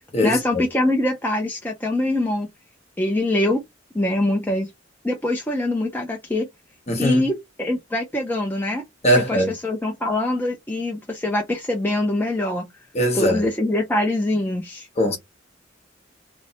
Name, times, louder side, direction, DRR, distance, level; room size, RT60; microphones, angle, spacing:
voice 1, 0.2-2.5 3.0-3.6 3.9-4.7 5.0-6.5 7.0-8.8 9.1-12.7 13.1-14.9, left 1 dB, 10° left, 0.6 m, -23 dB
voice 2, 6.9-7.3 9.0-9.5 12.9-13.4 15.0-15.2, equal, 35° left, 1.1 m, -20 dB
3.2 x 2.1 x 4.0 m
head